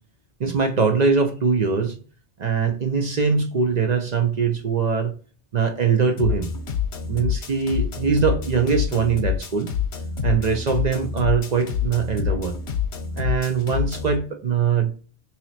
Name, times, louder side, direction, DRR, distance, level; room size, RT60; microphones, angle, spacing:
voice 1, 0.4-2.0 2.4-5.1 5.5-6.5 7.1-9.7 10.2-12.6 13.1-14.9, right 5 dB, 55° right, 4 dB, 0.5 m, -22 dB
sound 1, 6.2-14.2, left 7 dB, 70° left, 1.0 m, -27 dB
2.9 x 2.8 x 4.0 m, 0.39 s
omnidirectional pair, 1.2 m